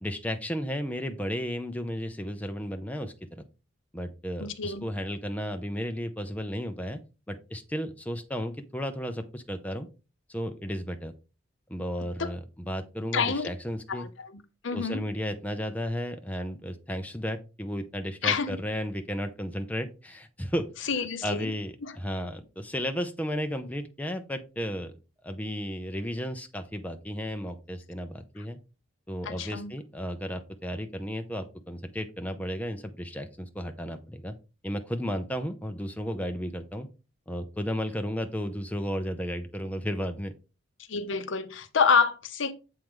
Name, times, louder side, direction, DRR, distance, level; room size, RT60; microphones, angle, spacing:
voice 1, 0.0-3.4 3.9-7.0 7.3-9.9 10.3-11.1 11.7-14.1 14.7-24.9 25.2-28.6 29.1-34.3 34.6-36.9 37.3-40.3, equal, 5° left, 0.5 m, -34 dB
voice 2, 4.4-4.8 12.2-12.3 13.1-13.5 13.9-15.0 18.2-18.5 20.9-21.5 21.8-21.9 29.2-29.7 40.9-42.5, left 5 dB, 65° left, 0.7 m, -27 dB
7.6 x 4.6 x 3.6 m
head